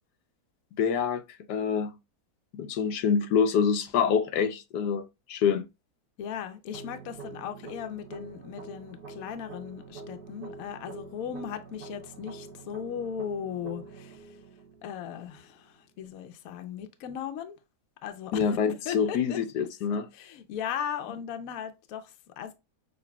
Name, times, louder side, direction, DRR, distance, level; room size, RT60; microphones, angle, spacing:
voice 1, 0.8-1.2 1.5-1.9 2.5-5.0 5.3-5.6 18.3-20.1, left 7 dB, 85° left, 1.2 m, -26 dB
voice 2, 6.2-14.4 14.8-17.6 18.0-18.5 18.8-19.4 20.1-22.5, left 8 dB, 65° left, 1.0 m, -37 dB
sound 1, 6.7-15.7, right 3 dB, 75° right, 1.6 m, -45 dB
6.5 x 2.9 x 2.2 m
omnidirectional pair, 1.7 m